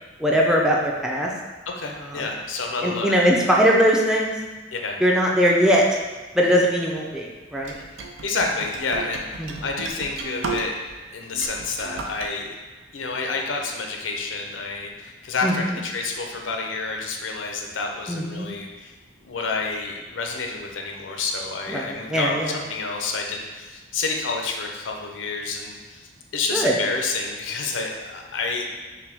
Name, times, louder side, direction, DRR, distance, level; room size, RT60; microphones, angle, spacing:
voice 1, 0.2-1.3 2.0-2.3 2.8-4.3 5.0-5.8 6.3-7.7 9.4-9.5 15.4-15.8 18.1-18.5 21.7-22.6 26.5-26.7, equal, 5° right, -2 dB, 0.4 m, -20 dB
voice 2, 1.7-3.1 3.6-3.7 4.7-5.0 7.7-7.8 8.2-9.3 9.6-10.8 11.1-12.5 12.9-18.9 19.2-28.6, left 4 dB, 80° left, 1 dB, 0.6 m, -29 dB
sound 1, 7.6-11.0 11.3-12.3, right 4 dB, 90° right, 0.5 m, -34 dB
5.8 x 2.2 x 3.4 m, 1.3 s
head